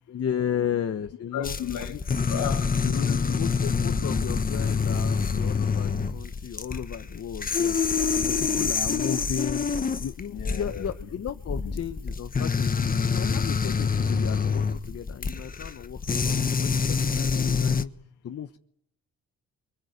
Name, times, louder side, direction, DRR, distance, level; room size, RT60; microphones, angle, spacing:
voice 1, 0.1-1.6 1.9-2.0 3.3-7.8 8.1-9.7 10.0-17.9 18.2-18.6, left 8 dB, 50° left, 1.3 m, -34 dB
voice 2, 1.3-2.0 2.3-3.4 8.0-8.7 10.3-11.1 11.6-11.8, left 9 dB, 80° left, 2.4 m, -35 dB
sound 1, 1.4-17.8, left 5 dB, 30° left, 1.4 m, -26 dB
29.5 x 24.0 x 8.2 m
cardioid pair, 90°, 30 cm